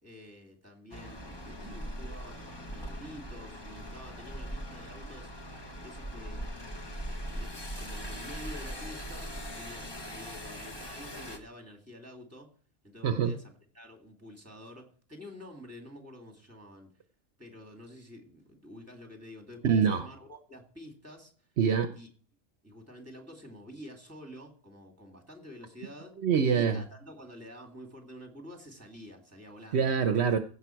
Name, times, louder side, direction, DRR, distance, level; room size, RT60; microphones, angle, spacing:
voice 1, 0.0-5.3 5.8-6.5 7.3-12.5 12.8-16.9 17.4-21.3 21.9-22.1 22.6-26.1 26.5-29.9, equal, 10° right, 2.5 m, -49 dB
sound 1, 0.9-11.4, equal, 20° left, 1.3 m, -40 dB
voice 2, 13.0-13.3 19.6-20.1 21.6-21.9 26.2-26.8 29.7-30.4, right 6 dB, 65° right, 1.0 m, -25 dB
16.0 x 5.7 x 4.6 m
omnidirectional pair, 1.2 m